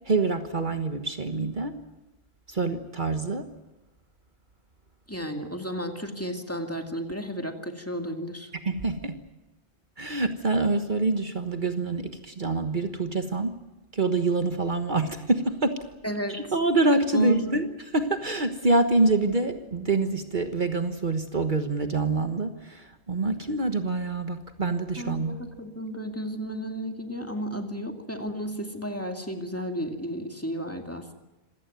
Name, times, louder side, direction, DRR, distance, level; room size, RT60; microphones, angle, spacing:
voice 1, 0.1-1.8 2.5-3.5 8.6-9.2 10.0-13.6 13.9-15.8 16.3-17.7 17.9-25.4, right 3 dB, 50° right, 7 dB, 1.5 m, -26 dB
voice 2, 5.1-8.5 16.0-16.5 17.1-17.6 25.0-31.1, equal, 15° left, 4 dB, 2.3 m, -33 dB
26.5 x 17.0 x 9.3 m, 1.0 s
omnidirectional pair, 1.1 m